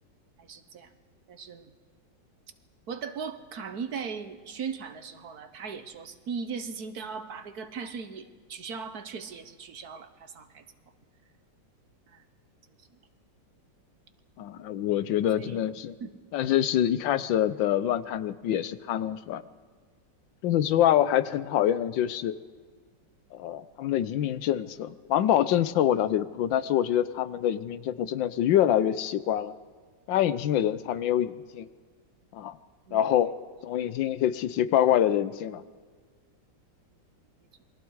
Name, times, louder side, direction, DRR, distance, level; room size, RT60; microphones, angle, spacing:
voice 1, 0.4-0.9 1.3-1.7 2.9-10.6 12.1-12.2 15.3-15.6 16.0-16.1 32.9-33.0, right 6 dB, 60° right, 10 dB, 1.6 m, -38 dB
voice 2, 14.4-15.9 16.3-19.4 20.4-22.3 23.3-29.5 30.1-31.7 32.3-32.6 32.9-33.3 33.6-35.6, left 11 dB, 90° left, 14 dB, 1.5 m, -25 dB
28.0 x 22.0 x 4.8 m, 1.5 s
omnidirectional pair, 2.0 m